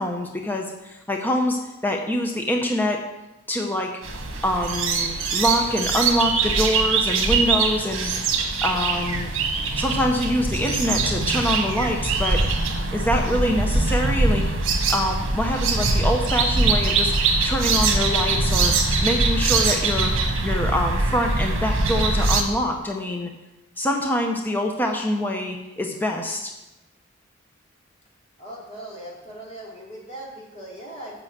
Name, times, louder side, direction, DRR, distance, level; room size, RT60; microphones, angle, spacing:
voice 1, 0.0-3.0 3.5-3.9 4.4-8.1 8.6-9.3 9.8-12.4 12.9-14.4 14.9-18.7 19.0-20.2 20.4-23.3 23.8-26.5, left 1 dB, 10° left, 2 dB, 0.7 m, -25 dB
sound 1, 4.0-22.4, right 3 dB, 65° right, 1.5 m, -22 dB
voice 2, 28.4-31.2, right 1 dB, 30° left, -4 dB, 2.7 m, -39 dB
7.5 x 6.4 x 7.7 m, 1.0 s
head